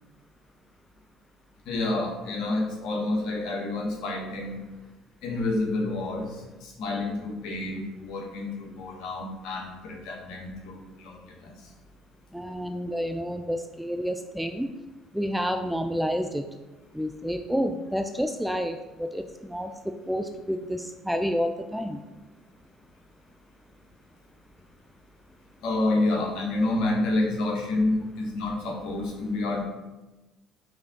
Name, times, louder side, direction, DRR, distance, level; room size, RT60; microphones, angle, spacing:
voice 1, 1.6-4.7 5.2-11.7 25.6-29.6, left 2 dB, 70° left, -1 dB, 1.5 m, -29 dB
voice 2, 12.3-14.7 15.1-16.5 16.9-19.7 20.1-22.0, equal, ahead, 6 dB, 0.4 m, -29 dB
5.6 x 3.5 x 5.3 m, 1.1 s
supercardioid pair, 80°, 0 cm